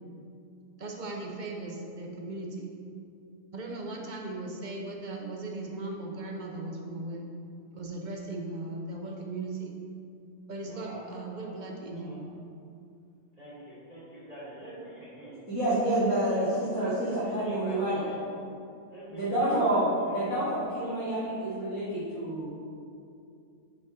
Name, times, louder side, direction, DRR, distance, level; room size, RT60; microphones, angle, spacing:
voice 1, 0.8-2.8 3.5-7.2 7.7-9.7 10.5-12.2, right 2 dB, 45° right, 0 dB, 0.6 m, -38 dB
voice 2, 10.6-11.1 11.3-11.6 11.9-12.2 13.4-18.2 18.9-20.2, right 1 dB, 30° right, -10 dB, 1.1 m, -45 dB
voice 3, 15.5-17.9 19.1-19.8 20.1-22.5, right 1 dB, 65° left, -13 dB, 2.3 m, -28 dB
7.0 x 4.2 x 4.8 m, 2.5 s
omnidirectional pair, 1.5 m